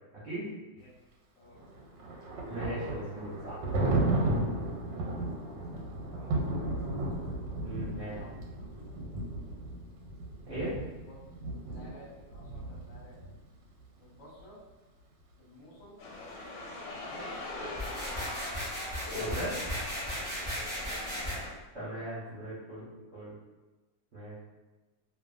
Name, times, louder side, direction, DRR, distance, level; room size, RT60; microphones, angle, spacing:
voice 1, 1.3-1.7 6.1-7.5 7.9-8.3 8.8-8.9 11.1-11.2 11.7-13.2 14.0-14.6 15.4-16.0 16.9-17.4 17.8-18.2 20.7-21.3 22.3-22.4 22.9-23.1, left 1 dB, 50° left, -5 dB, 1.0 m, -54 dB
Thunder, 1.6-13.3, right 2 dB, 90° right, 1.3 m, -34 dB
voice 2, 2.5-3.6 7.6-8.2 10.5-10.8 19.1-19.6 21.7-23.3 24.1-24.3, right 1 dB, 50° right, -9 dB, 0.9 m, -38 dB
sound 1, 16.0-21.5, left 2 dB, 85° left, 1.3 m, -40 dB
sound 2, 17.7-21.3, equal, 15° right, 0.7 m, -36 dB
2.6 x 2.5 x 2.4 m, 1.2 s
omnidirectional pair, 1.9 m